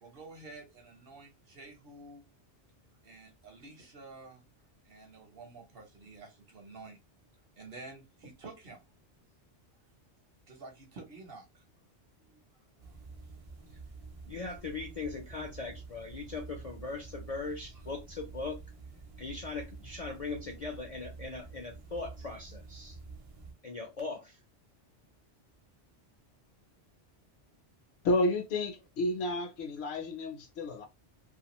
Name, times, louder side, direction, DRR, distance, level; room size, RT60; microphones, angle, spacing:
voice 1, 0.0-2.3 3.0-4.4 4.8-7.0 7.5-8.8 10.5-11.6 12.2-12.4 12.8-13.0, right 3 dB, 55° right, 0.9 m, -50 dB
sound 1, 12.8-23.5, right 3 dB, 40° right, 0.6 m, -48 dB
voice 2, 14.2-18.6 19.2-23.0 23.6-24.4, left 3 dB, 50° left, 0.5 m, -39 dB
voice 3, 28.0-30.9, left 1 dB, 70° left, 0.8 m, -31 dB
2.4 x 2.4 x 2.9 m
omnidirectional pair, 1.2 m